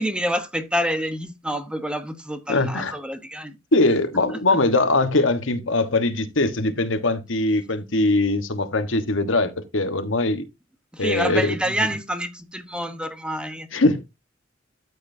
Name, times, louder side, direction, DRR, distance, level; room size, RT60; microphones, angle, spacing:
voice 1, 0.0-3.6 10.9-13.7, equal, 5° right, 1.0 m, -27 dB
voice 2, 2.5-3.0 3.7-10.4 11.0-11.6 13.7-14.0, left 2 dB, 75° left, 1.3 m, -21 dB
12.5 x 7.7 x 2.7 m
head